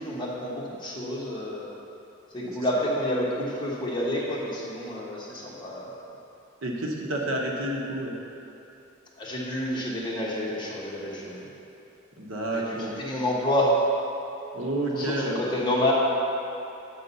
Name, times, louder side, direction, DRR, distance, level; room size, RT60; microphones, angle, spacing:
voice 1, 0.0-1.7 2.3-5.9 9.2-11.5 12.5-13.7 14.9-15.9, left 1 dB, 20° left, -6 dB, 1.2 m, -29 dB
voice 2, 6.6-8.1 12.2-12.9 14.5-15.4, right 1 dB, 80° right, -1 dB, 1.0 m, -29 dB
8.3 x 3.8 x 5.4 m, 2.9 s
head